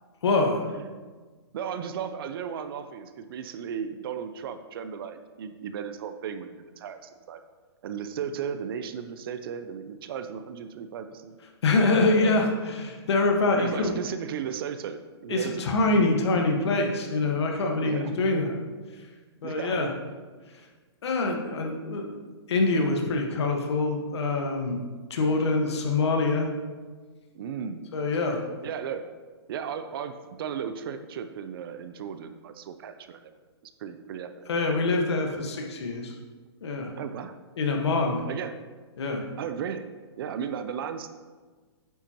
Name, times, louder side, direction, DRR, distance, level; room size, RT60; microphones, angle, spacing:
voice 1, 0.2-0.6 11.6-13.9 15.3-18.5 19.4-19.9 21.0-22.1 22.5-24.8 25.1-26.5 27.9-28.4 34.5-36.1 36.6-36.9 37.6-38.2 39.0-39.2, left 3 dB, 70° left, 2 dB, 1.5 m, -25 dB
voice 2, 1.5-7.4 7.8-11.4 12.2-12.5 13.5-15.7 17.8-18.1 19.4-20.0 25.3-25.9 27.3-27.9 28.6-29.1 29.5-33.3 33.6-34.5 37.0-37.3 38.3-38.5 39.4-39.9 40.2-41.1, right 7 dB, 55° right, 9 dB, 0.6 m, -35 dB
9.1 x 7.3 x 3.0 m, 1.4 s
hypercardioid pair, 140°, 14 cm